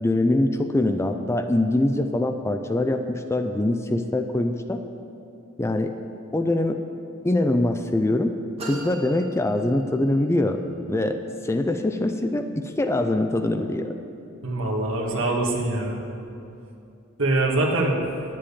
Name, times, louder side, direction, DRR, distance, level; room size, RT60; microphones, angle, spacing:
voice 1, 0.0-4.8 5.6-5.9 6.3-6.8 7.2-8.3 8.6-10.6 10.9-14.0, left 1 dB, 15° left, 7 dB, 0.4 m, -23 dB
sound 1, 8.6-10.3, right 2 dB, 30° right, 1.8 m, -39 dB
voice 2, 14.4-16.0 17.2-18.0, right 2 dB, 65° right, -1 dB, 1.7 m, -23 dB
10.5 x 7.6 x 8.5 m, 2.7 s
head